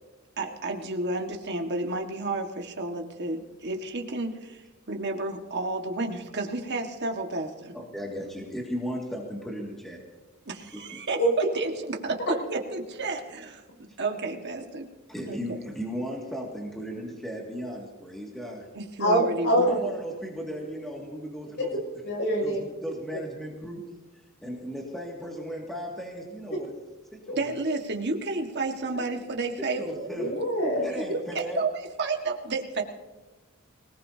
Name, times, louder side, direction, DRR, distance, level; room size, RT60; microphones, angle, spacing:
voice 1, 0.4-4.6 4.9-7.7 10.5-13.6 14.0-14.9 15.3-15.4 18.7-19.8 27.3-30.1 31.1-32.8, right 3 dB, 55° right, 3 dB, 1.7 m, -31 dB
voice 2, 7.7-10.0 10.9-11.0 15.1-18.7 19.7-21.8 22.4-23.8 24.4-26.7 27.1-27.4 29.8-30.3 30.8-31.6, equal, ahead, -2 dB, 2.2 m, -36 dB
voice 3, 19.0-19.7 21.6-21.7 22.0-22.6 27.3-27.4 30.1-30.9, equal, 60° left, 0 dB, 6.5 m, -24 dB
25.0 x 18.5 x 2.9 m, 1.2 s
head